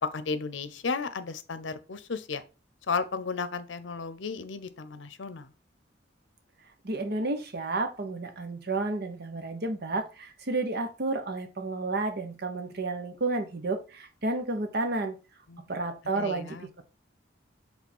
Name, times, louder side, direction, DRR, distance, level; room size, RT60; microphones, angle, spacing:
voice 1, 0.0-2.4 2.9-5.5 15.5-15.7 16.0-16.8, left 4 dB, 85° left, 0.7 m, -34 dB
voice 2, 6.8-15.2 15.7-16.7, right 3 dB, 60° right, 1.1 m, -31 dB
5.1 x 3.6 x 5.4 m
head